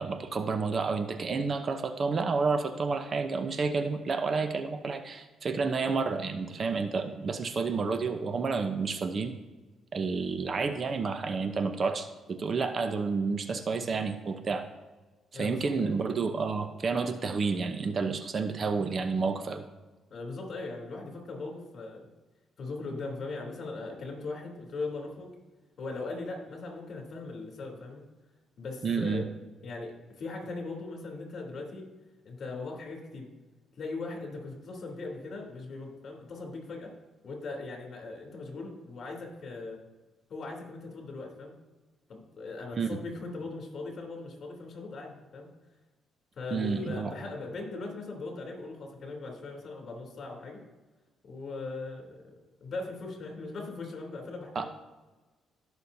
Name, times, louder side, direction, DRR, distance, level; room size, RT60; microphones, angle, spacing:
voice 1, 0.0-9.3 9.9-14.7 15.3-19.6 28.8-29.2 42.8-43.0 46.5-47.1 54.5-54.7, right 4 dB, 45° right, 8 dB, 0.9 m, -30 dB
voice 2, 15.3-16.0 20.1-22.1 22.6-25.3 25.8-28.0 28.6-29.3 29.6-31.8 32.2-33.3 33.8-36.9 37.2-39.8 40.3-41.5 42.1-45.5 46.4-50.6 51.2-52.3 52.6-54.7, left 3 dB, 55° left, 0 dB, 3.3 m, -39 dB
16.5 x 6.3 x 2.8 m, 1.2 s
cardioid pair, 90°, 0 cm